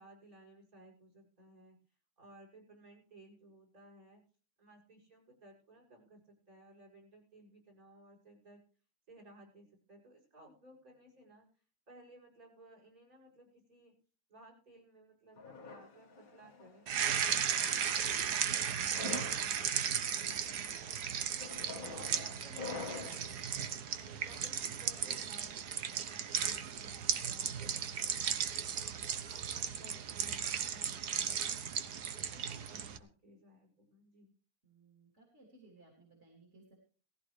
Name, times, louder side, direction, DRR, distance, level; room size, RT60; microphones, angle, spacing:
voice 1, 0.0-1.8 2.2-4.2 4.6-8.6 9.1-11.5 11.9-13.9 14.3-18.6 19.0-21.6 21.9-23.1 23.9-28.6 29.1-31.7 32.2-34.3, right 1 dB, 60° right, 1 dB, 7.6 m, -59 dB
sound 1, 15.4-16.8 17.6-18.0 18.8-19.5 20.1-20.4 21.4-23.3, left 4 dB, 60° left, 2.1 m, -45 dB
sound 2, 16.9-33.0, right 8 dB, 75° right, 1.6 m, -36 dB
voice 2, 34.6-36.8, right 2 dB, 45° right, 0 dB, 3.8 m, -61 dB
18.5 x 15.5 x 3.3 m, 0.39 s
omnidirectional pair, 1.7 m